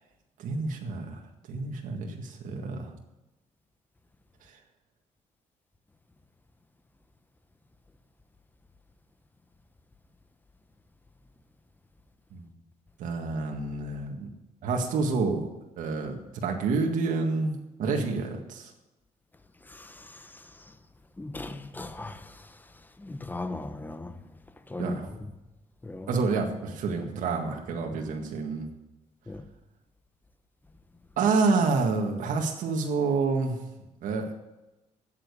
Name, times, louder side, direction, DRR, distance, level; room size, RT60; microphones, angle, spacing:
voice 1, 0.4-1.2 1.5-2.9 12.3-12.4 13.0-14.3 14.6-15.5 15.8-18.7 24.8-25.1 26.1-28.7 31.2-33.6 34.0-34.3, right 4 dB, 80° right, 1.9 m, -28 dB
voice 2, 19.7-20.7 21.2-22.6 23.0-24.1 24.7-25.2 25.8-26.1 29.3-29.5, left 2 dB, 15° left, 1.0 m, -39 dB
13.5 x 9.1 x 6.8 m
cardioid pair, 110°, 13 cm